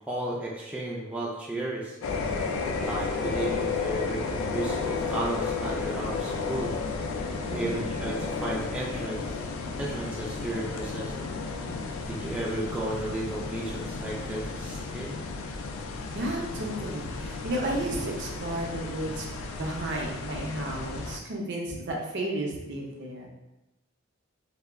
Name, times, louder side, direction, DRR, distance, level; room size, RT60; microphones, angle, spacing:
voice 1, 0.1-2.0 2.8-6.7 7.5-9.4 9.8-11.1 12.1-15.1, right 2 dB, 5° right, -5 dB, 0.3 m, -34 dB
sound 1, 2.0-21.2, left 4 dB, 90° left, 0.3 m, -33 dB
voice 2, 7.5-7.8 16.1-19.3 19.6-23.3, right 1 dB, 60° right, -1 dB, 0.5 m, -33 dB
2.2 x 2.0 x 3.4 m, 0.98 s
head